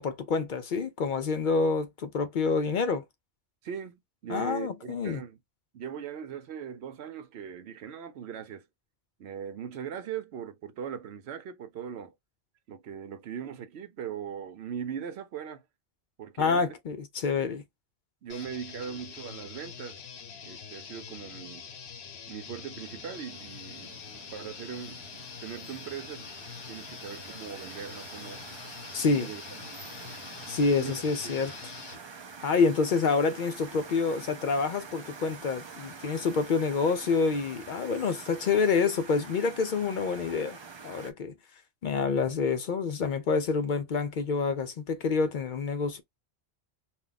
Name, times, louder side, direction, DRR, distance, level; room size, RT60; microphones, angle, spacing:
voice 1, 0.0-3.0 4.3-5.2 16.4-17.6 28.9-29.3 30.5-31.5 32.4-40.6 40.8-41.3 41.8-46.0, left 4 dB, 60° left, 0.6 m, -27 dB
voice 2, 3.6-5.4 5.7-8.7 9.2-12.1 12.7-15.6 16.2-16.7 18.2-20.0 20.4-21.7 22.3-26.3 26.7-28.4 29.1-29.4 30.7-31.4, right 8 dB, 85° right, 0.9 m, -40 dB
sound 1, 18.3-32.0, left 7 dB, 80° left, 0.9 m, -45 dB
sound 2, 22.8-41.1, right 5 dB, 40° right, 0.4 m, -46 dB
2.3 x 2.2 x 3.8 m
omnidirectional pair, 1.1 m